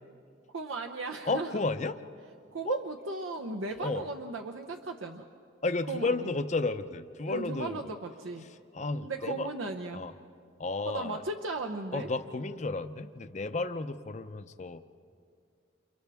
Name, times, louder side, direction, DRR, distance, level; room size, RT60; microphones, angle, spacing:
voice 1, 0.5-1.6 2.5-5.3 5.9-6.4 7.3-8.5 9.0-10.0 10.9-12.1, right 3 dB, 75° right, 3 dB, 0.8 m, -36 dB
voice 2, 1.3-2.0 2.7-2.8 3.8-4.0 5.6-7.8 8.7-9.5 9.9-10.1 10.6-11.2 11.9-14.8, left 3 dB, 35° left, 10 dB, 0.6 m, -32 dB
29.5 x 29.0 x 3.5 m, 2.4 s
head